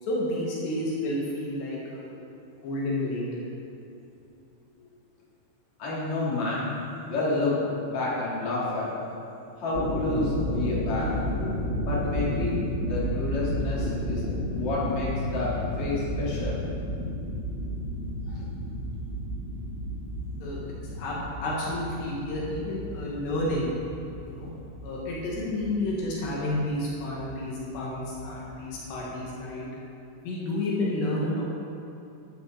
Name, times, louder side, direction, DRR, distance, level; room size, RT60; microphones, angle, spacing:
voice 1, 0.0-2.1 2.6-3.5 20.4-20.6 21.0-21.2 21.4-23.7 24.2-24.5 24.8-29.7 30.2-31.4, left 1 dB, 80° left, -5 dB, 4.1 m, -30 dB
voice 2, 5.8-6.7 7.0-8.9 9.6-11.1 11.8-14.2 14.5-16.6 18.3-18.4, left 2 dB, 45° left, -7 dB, 4.4 m, -29 dB
sound 1, 9.6-29.2, equal, 20° right, 2.1 m, -32 dB
14.0 x 13.0 x 4.2 m, 2.7 s
omnidirectional pair, 4.8 m